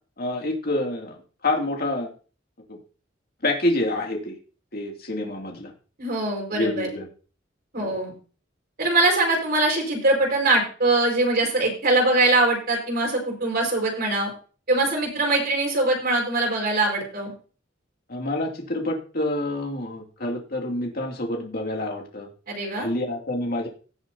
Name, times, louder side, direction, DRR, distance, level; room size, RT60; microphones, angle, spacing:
voice 1, 0.2-1.1 1.4-2.1 2.7-2.8 3.4-4.4 4.7-5.7 6.5-7.1 7.8-7.9 18.1-22.3 22.7-23.7, left 1 dB, 55° left, 1 dB, 2.5 m, -27 dB
voice 2, 6.0-6.9 7.7-8.1 8.8-14.3 14.7-17.3 22.5-22.9, right 2 dB, 55° right, -1 dB, 4.8 m, -22 dB
17.5 x 7.1 x 2.8 m, 0.37 s
head